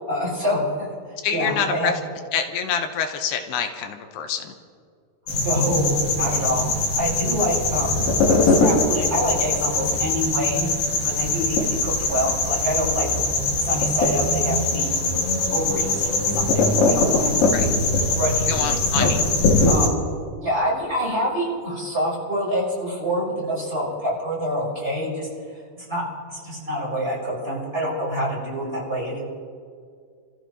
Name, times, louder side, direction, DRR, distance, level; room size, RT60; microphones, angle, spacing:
voice 1, 0.1-0.9 1.3-1.9 5.4-6.7 6.9-8.0 8.4-13.3 13.6-15.0 15.5-17.4 18.1-19.1 19.6-20.0 20.4-25.3 25.8-29.2, equal, 15° right, -6 dB, 5.3 m, -26 dB
voice 2, 1.2-1.9 2.3-4.5 17.5-17.7 18.5-19.2, left 7 dB, 85° left, 5 dB, 3.0 m, -26 dB
sound 1, 5.3-19.9, left 2 dB, 65° left, 3.7 m, -21 dB
29.5 x 14.5 x 3.1 m, 2.2 s
omnidirectional pair, 4.7 m